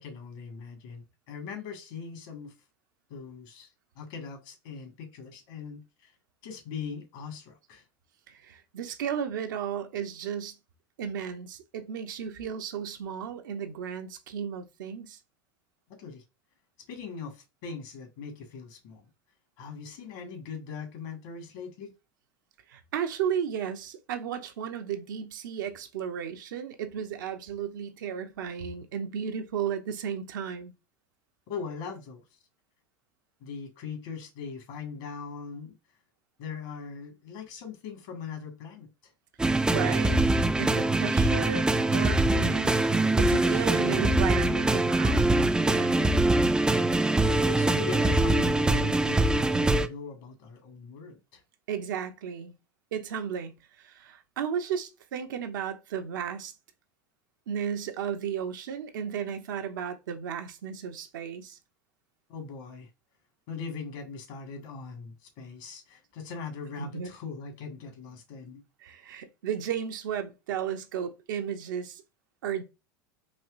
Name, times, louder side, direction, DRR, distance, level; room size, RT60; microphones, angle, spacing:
voice 1, 0.0-2.5 3.1-3.7 3.9-6.1 6.4-7.8 16.0-16.2 16.9-19.1 19.6-21.9 31.5-32.2 33.4-35.8 36.4-39.1 47.3-51.4 62.3-62.9 63.5-68.6, left 5 dB, 60° left, 1.5 m, -40 dB
voice 2, 8.3-10.6 11.0-15.2 22.7-30.7 39.7-40.2 40.6-46.1 51.7-52.5 52.9-53.5 53.8-56.5 57.5-61.6 66.8-67.1 68.8-72.0 72.4-72.6, right 8 dB, 70° right, 0.6 m, -34 dB
sound 1, 39.4-49.9, right 2 dB, 5° right, 0.3 m, -23 dB
4.3 x 2.9 x 2.4 m
hypercardioid pair, 80°, 11 cm